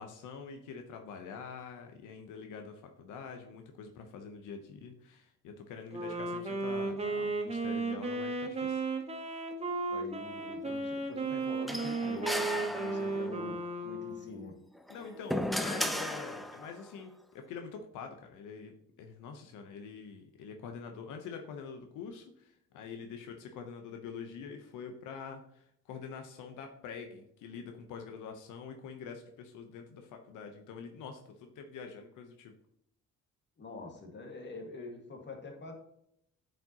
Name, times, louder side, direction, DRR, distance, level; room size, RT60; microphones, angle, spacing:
voice 1, 0.0-8.8 14.9-32.5, left 6 dB, 90° left, 5 dB, 0.9 m, -45 dB
Wind instrument woodwind instrument, 5.9-14.5, right 3 dB, 20° right, 1.3 m, -35 dB
voice 2, 9.9-14.6 33.6-35.7, left 2 dB, 35° left, 2 dB, 1.8 m, -45 dB
sound 1, 11.7-13.4 14.8-16.8, equal, ahead, 0.4 m, -35 dB
9.1 x 5.2 x 2.9 m, 0.74 s
cardioid pair, 90°, 30 cm